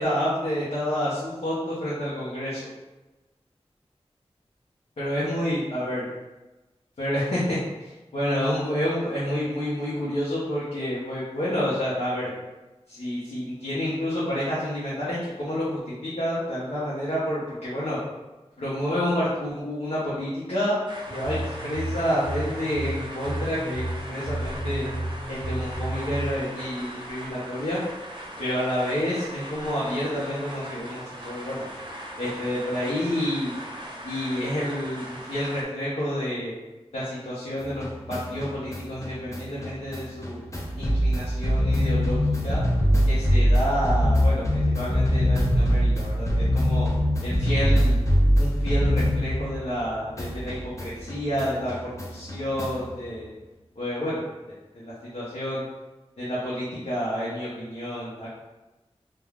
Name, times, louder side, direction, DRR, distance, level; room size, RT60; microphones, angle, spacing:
voice 1, 0.0-2.6 5.0-6.0 7.0-12.3 12.9-18.0 18.6-20.8 21.1-23.8 24.1-24.9 25.3-27.8 28.4-31.7 32.2-33.5 34.0-36.5 36.9-40.4 40.8-42.2 42.4-42.6 43.1-46.9 47.2-48.0 48.4-53.3 53.8-54.2 54.7-55.6 56.2-58.3, equal, 70° left, -9 dB, 0.8 m, -29 dB
sound 1, 20.9-35.6, right 1 dB, 45° right, 0.5 m, -39 dB
sound 2, 21.1-26.4, right 1 dB, 45° left, 1.5 m, -32 dB
sound 3, 37.6-49.9 50.2-52.9, equal, 30° left, 0.6 m, -23 dB
3.2 x 2.2 x 2.3 m, 1.1 s
wide cardioid pair, 70°, 11 cm